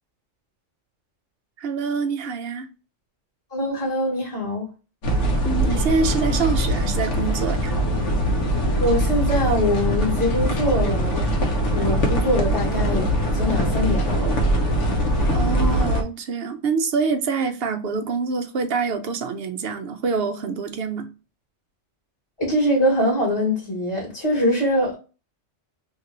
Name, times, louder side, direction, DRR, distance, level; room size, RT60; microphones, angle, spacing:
voice 1, 1.6-2.7 5.4-7.7 15.3-21.1, right 4 dB, 60° right, 0.7 m, -25 dB
voice 2, 3.5-4.7 8.8-11.3 11.7-13.1 13.3-14.3 22.4-24.9, equal, 25° left, 1.4 m, -23 dB
sound 1, 5.0-16.0, equal, 70° left, 1.1 m, -22 dB
2.9 x 2.6 x 2.9 m
omnidirectional pair, 1.3 m